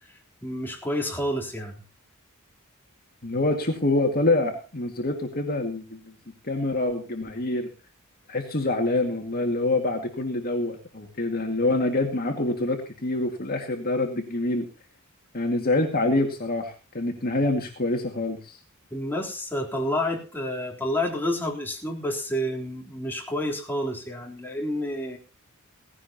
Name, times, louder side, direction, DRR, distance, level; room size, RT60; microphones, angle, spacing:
voice 1, 0.4-1.8 18.9-25.2, left 1 dB, 10° left, -1 dB, 3.5 m, -29 dB
voice 2, 3.2-6.0 6.4-7.7 8.3-14.7 15.3-18.6, left 2 dB, 45° left, 3 dB, 2.1 m, -26 dB
17.5 x 16.0 x 2.9 m, 0.33 s
head